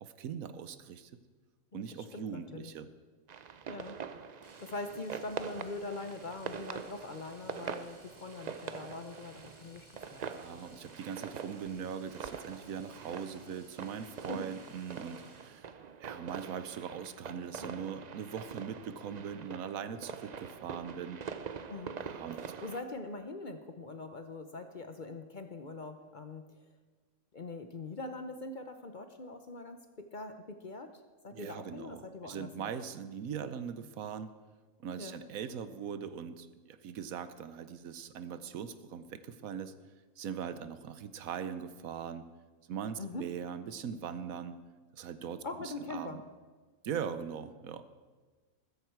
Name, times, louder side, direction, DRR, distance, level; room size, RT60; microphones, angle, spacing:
voice 1, 0.0-1.1 1.7-2.9 10.1-15.7 16.0-21.2 22.0-22.4 31.3-34.3 34.8-39.7 40.2-42.3 42.7-44.6 44.9-46.2 46.8-47.8, right 7 dB, 80° right, 12 dB, 1.2 m, -41 dB
voice 2, 1.7-2.7 3.7-4.0 4.3-10.3 14.3-14.5 21.7-21.9 22.6-26.6 27.3-32.7 35.0-35.2 43.0-43.2 45.4-46.2, left 2 dB, 40° left, 8 dB, 0.8 m, -43 dB
sound 1, 3.3-22.8, right 6 dB, 50° right, 0.5 m, -44 dB
Domestic sounds home sounds, 4.4-15.7 17.8-17.9 18.2-18.3, right 1 dB, 20° right, 2.1 m, -60 dB
15.0 x 13.5 x 4.6 m, 1.4 s
omnidirectional pair, 1.5 m